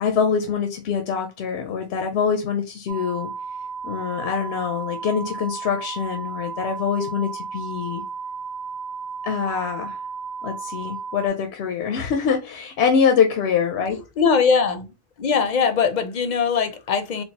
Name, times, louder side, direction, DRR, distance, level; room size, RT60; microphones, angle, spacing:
voice 1, 0.0-3.3 3.8-8.0 9.2-10.0 10.4-14.0, left 6 dB, 85° left, 0.8 m, -24 dB
sound 1, 2.9-11.3, right 5 dB, 65° right, 0.7 m, -34 dB
voice 2, 13.9-14.9 15.2-17.2, left 6 dB, 55° left, 0.6 m, -21 dB
3.8 x 2.3 x 2.8 m
omnidirectional pair, 1.1 m